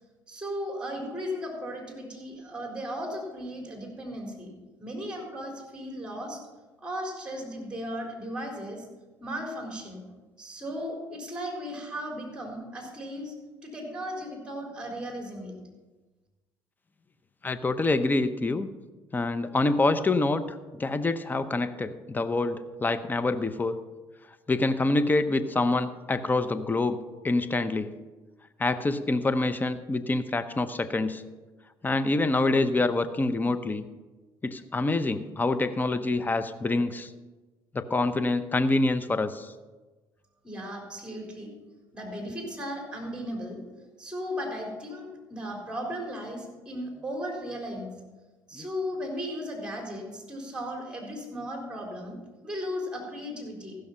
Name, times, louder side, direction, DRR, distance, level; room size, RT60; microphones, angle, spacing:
voice 1, 0.3-4.5 4.8-6.4 6.8-8.9 9.2-10.0 10.4-13.3 13.6-15.5 40.4-41.5 41.9-43.6 44.0-47.9 48.5-52.2 52.4-53.8, equal, 10° right, 1 dB, 4.1 m, -36 dB
voice 2, 17.4-18.7 19.1-23.8 24.5-27.0 27.2-28.0 28.6-31.2 31.8-33.8 34.4-37.1 37.7-39.5 48.5-48.7, left 2 dB, 20° left, 12 dB, 0.8 m, -26 dB
15.0 x 6.5 x 5.7 m, 1.2 s
supercardioid pair, 75°, 9 cm